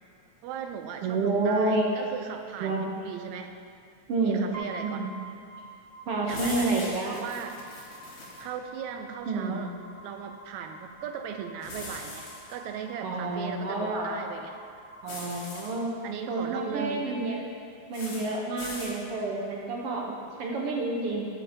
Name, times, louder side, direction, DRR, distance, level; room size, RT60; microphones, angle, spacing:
voice 1, 0.4-3.6 4.2-5.0 6.3-6.7 7.1-7.6 8.4-9.7 10.0-14.6 16.0-17.2, right 7 dB, 85° right, 6 dB, 1.9 m, -38 dB
voice 2, 1.0-1.9 2.6-2.8 4.1-4.5 4.8-5.1 6.1-7.2 9.3-9.6 13.0-14.1 15.0-15.9 16.3-17.4 17.9-21.3, right 3 dB, 65° right, -2 dB, 1.7 m, -29 dB
sound 1, 4.5-16.5, right 1 dB, 10° right, 1.0 m, -48 dB
sound 2, 6.3-8.4 11.6-12.5 15.1-15.7 17.9-18.3 18.6-19.0, left 2 dB, 80° left, 3.1 m, -40 dB
12.5 x 8.5 x 2.8 m, 2.4 s
omnidirectional pair, 3.3 m